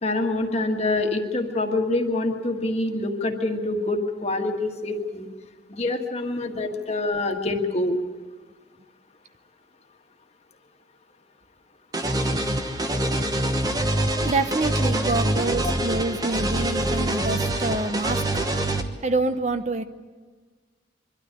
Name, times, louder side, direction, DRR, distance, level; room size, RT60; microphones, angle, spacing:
voice 1, 0.0-5.3 5.7-8.0, left 2 dB, 35° left, 4 dB, 1.6 m, -26 dB
sound 1, 11.9-18.8, right 1 dB, 20° right, 1.1 m, -25 dB
voice 2, 14.2-18.2 19.0-19.8, right 2 dB, 35° right, 10 dB, 0.7 m, -26 dB
23.5 x 12.5 x 9.9 m, 1.4 s
head